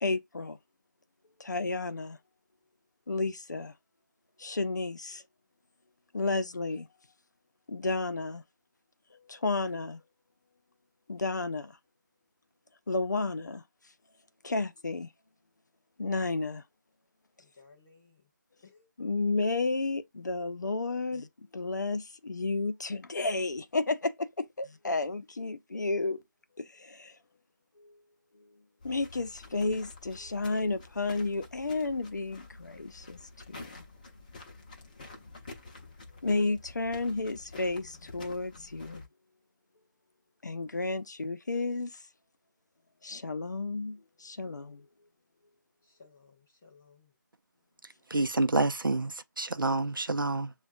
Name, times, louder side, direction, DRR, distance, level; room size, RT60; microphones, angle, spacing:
voice 1, 0.0-0.6 1.4-2.2 3.1-3.7 4.4-5.2 6.1-6.9 7.7-8.4 9.1-10.0 11.1-11.8 12.9-13.6 14.4-15.1 16.0-16.6 19.0-26.2 26.6-27.2 27.8-28.0 28.3-28.5 28.8-33.8 36.2-39.0 40.4-42.1 43.0-44.9, left 3 dB, 60° left, 0.6 m, -32 dB
voice 2, 17.4-18.3 18.6-18.9 45.8-47.1, left 4 dB, 5° left, 0.3 m, -59 dB
sound 1, 28.8-39.1, left 3 dB, 25° left, 0.7 m, -49 dB
voice 3, 48.1-50.5, right 2 dB, 90° right, 0.6 m, -28 dB
6.8 x 2.3 x 2.4 m
figure-of-eight pair, 160°, 11 cm